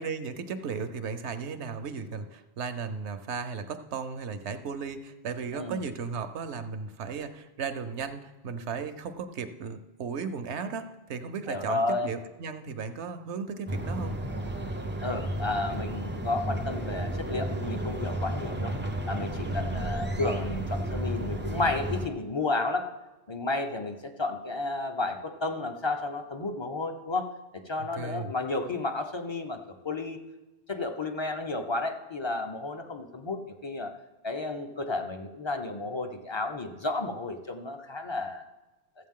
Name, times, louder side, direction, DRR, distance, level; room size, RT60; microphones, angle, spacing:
voice 1, 0.0-14.2 19.4-19.9 28.0-28.3, right 5 dB, 75° right, 10 dB, 1.0 m, -36 dB
voice 2, 11.5-12.1 15.0-18.7 19.1-22.9 23.3-27.3 27.5-29.6 29.8-30.2 30.7-33.9 34.2-38.4, left 2 dB, 30° left, 6 dB, 0.6 m, -32 dB
sound 1, 13.7-22.1, right 1 dB, 15° right, 0.4 m, -32 dB
14.0 x 7.9 x 3.7 m, 1.1 s
omnidirectional pair, 1.2 m